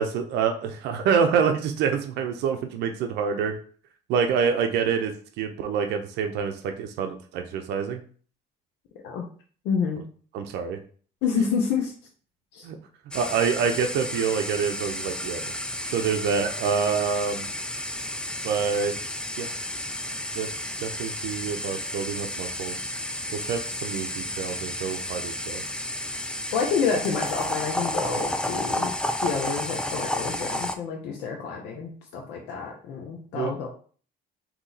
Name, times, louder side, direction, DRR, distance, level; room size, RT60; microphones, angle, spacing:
voice 1, 0.0-3.6 4.1-8.0 10.3-10.8 12.6-12.8 13.1-15.4 15.9-17.5 18.4-18.9 19.4-19.5 20.3-20.5 20.8-22.8 23.3-25.6 33.3-33.5, right 6 dB, 85° right, 5 dB, 0.6 m, -26 dB
voice 2, 9.6-10.0 11.2-11.9 12.5-12.7 26.5-28.9 29.2-33.7, left 6 dB, 90° left, 0 dB, 0.8 m, -28 dB
sound 1, 13.1-30.7, left 1 dB, 5° left, 0.4 m, -32 dB
4.1 x 2.9 x 3.9 m, 0.43 s
cardioid pair, 110°, 17 cm